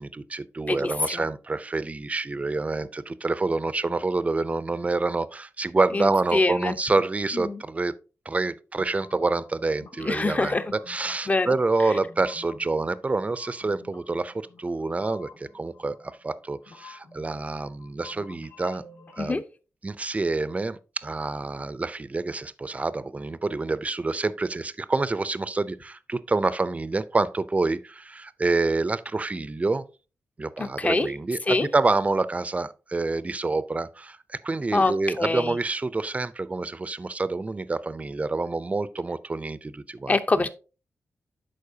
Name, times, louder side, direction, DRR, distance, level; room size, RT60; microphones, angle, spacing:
voice 1, 0.0-7.9 8.3-10.6 10.9-18.8 19.1-19.4 19.8-29.8 30.4-40.1, right 3 dB, 25° right, 0.5 m, -27 dB
voice 2, 0.7-1.3 5.9-6.8 7.3-7.6 10.0-10.7 11.3-11.6 11.8-12.0 19.2-19.4 30.6-31.1 31.4-31.7 34.7-35.6 40.1-40.5, left 2 dB, 30° left, 0.7 m, -25 dB
sound 1, 8.7-19.2, left 4 dB, 70° left, 2.6 m, -50 dB
11.5 x 4.4 x 2.7 m
cardioid pair, 85°, 5 cm